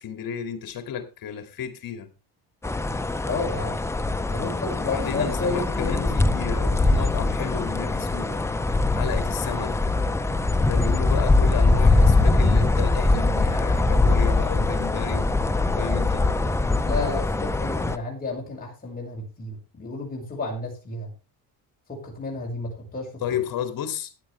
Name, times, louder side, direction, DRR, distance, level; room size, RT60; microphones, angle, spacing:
voice 1, 0.0-2.1 4.8-8.5 8.9-9.9 10.6-15.3 15.8-16.3 23.2-24.1, left 8 dB, 60° left, 2.5 m, -32 dB
sound 1, 2.6-18.0, left 2 dB, 5° left, 0.5 m, -22 dB
voice 2, 3.3-3.8 4.3-6.5 16.8-21.1 21.9-23.1, left 3 dB, 25° left, 5.7 m, -32 dB
15.5 x 9.9 x 3.4 m
cardioid pair, 155°, 38 cm